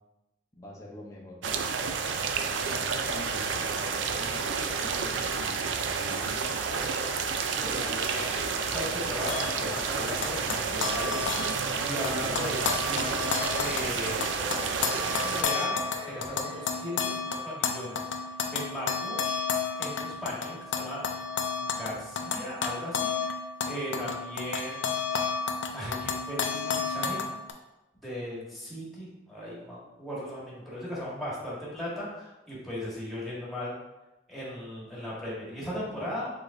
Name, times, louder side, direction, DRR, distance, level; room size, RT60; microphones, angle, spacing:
voice 1, 0.6-1.6 2.4-6.4, left 1 dB, 20° left, -3 dB, 0.7 m, -45 dB
sound 1, 1.4-15.4, right 5 dB, 80° right, 0.4 m, -30 dB
voice 2, 7.6-14.3 14.9-18.1 18.5-19.4 19.8-23.1 23.6-25.0 25.7-27.2 28.0-33.7 34.3-36.3, equal, ahead, -7 dB, 1.4 m, -37 dB
sound 2, 9.2-11.3 11.8-14.0 14.4-17.2 17.8-17.9 18.2-18.3, equal, 25° right, 0.6 m, -43 dB
sound 3, 9.3-11.8 12.0-27.5, left 5 dB, 85° left, 0.5 m, -32 dB
5.0 x 3.8 x 2.6 m, 1.0 s
head